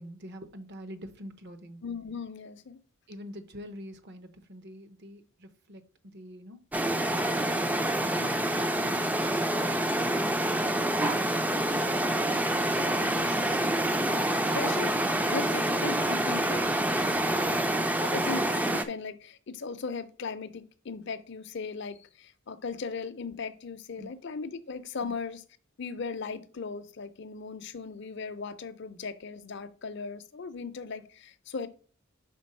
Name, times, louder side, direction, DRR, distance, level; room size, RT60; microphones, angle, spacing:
voice 1, 0.0-1.8 3.1-5.8 6.1-6.6 24.0-24.1 25.0-25.1, equal, 50° right, 0.7 m, -45 dB
voice 2, 1.8-2.8 12.8-13.7 14.1-14.2 14.5-16.7 18.1-25.4 25.8-31.7, left 4 dB, 55° left, 0.5 m, -38 dB
sound 1, 6.7-18.8, right 1 dB, 5° right, 0.3 m, -27 dB
5.2 x 3.8 x 5.4 m
head